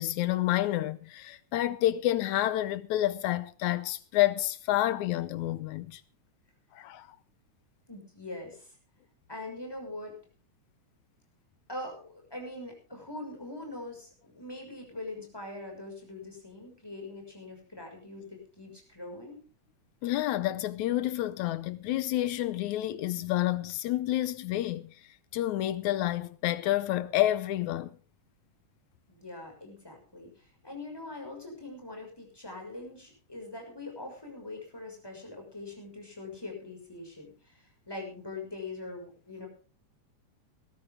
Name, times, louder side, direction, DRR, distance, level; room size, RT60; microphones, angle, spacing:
voice 1, 0.0-6.0 6.7-7.1 20.0-24.9 25.3-28.0, left 14 dB, 75° left, 2.2 m, -29 dB
voice 2, 7.9-8.8 9.3-10.1 11.7-19.4 29.1-39.5, left 2 dB, 5° left, 5.9 m, -42 dB
20.0 x 13.0 x 3.7 m
omnidirectional pair, 3.5 m